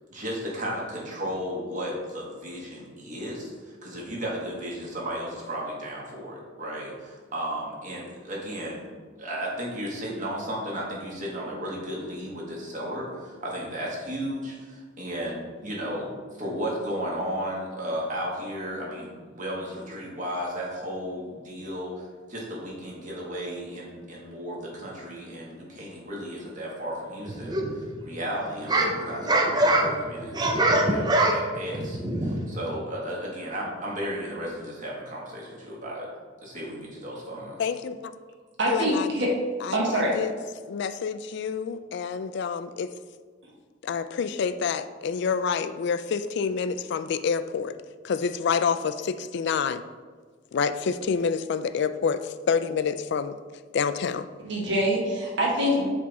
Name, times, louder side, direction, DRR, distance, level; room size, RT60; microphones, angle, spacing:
voice 1, 0.1-8.8 9.2-16.1 16.4-30.5 30.9-36.1 36.4-37.7, equal, 40° right, -3 dB, 1.6 m, -34 dB
sound 1, 27.3-28.0 28.4-32.7, right 1 dB, 20° right, 0.6 m, -24 dB
voice 2, 37.6-38.1 38.7-39.4 39.6-40.3 40.7-42.9 43.8-47.7 48.0-49.8 50.5-53.4 53.7-54.3, left 6 dB, 60° left, 12 dB, 0.3 m, -28 dB
voice 3, 38.6-39.3 39.7-40.1 54.4-55.9, equal, 65° right, -3 dB, 1.5 m, -24 dB
7.6 x 3.5 x 4.0 m, 1.5 s
head